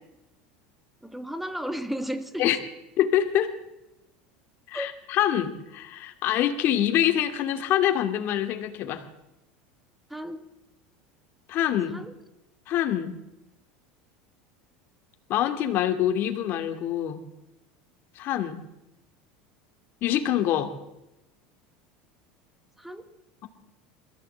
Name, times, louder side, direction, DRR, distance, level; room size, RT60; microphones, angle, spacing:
voice 1, 1.0-2.5 4.7-4.9 10.1-10.5 11.9-12.1 22.8-23.1, equal, 5° right, 11 dB, 1.6 m, -34 dB
voice 2, 3.0-3.5 4.7-9.0 11.5-12.0 12.7-13.2 15.3-17.2 18.2-18.6 20.0-20.7, left 11 dB, 50° left, 7 dB, 2.4 m, -25 dB
22.0 x 15.0 x 8.1 m, 0.93 s
supercardioid pair, 120°, 5 cm